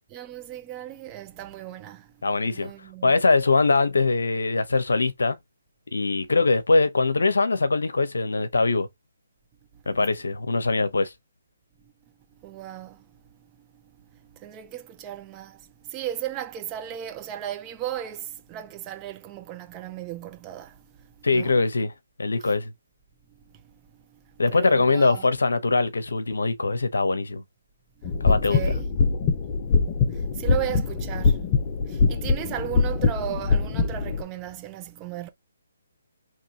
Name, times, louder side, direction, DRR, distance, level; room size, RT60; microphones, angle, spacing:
voice 1, 0.1-2.1 2.4-3.1 10.0-10.1 12.4-13.0 14.4-20.8 21.3-21.6 22.4-22.5 24.5-25.3 28.2-28.9 30.1-31.4 31.8-35.3, right 12 dB, 20° right, 0.7 m, -36 dB
voice 2, 2.2-2.7 3.0-5.4 5.9-8.9 9.9-11.1 21.2-21.9 22.2-22.7 24.4-27.4 28.2-28.6, left 3 dB, 80° left, 0.9 m, -22 dB
sound 1, 28.0-34.2, left 4 dB, 30° left, 0.7 m, -23 dB
3.5 x 3.1 x 2.9 m
hypercardioid pair, 150°, 0 cm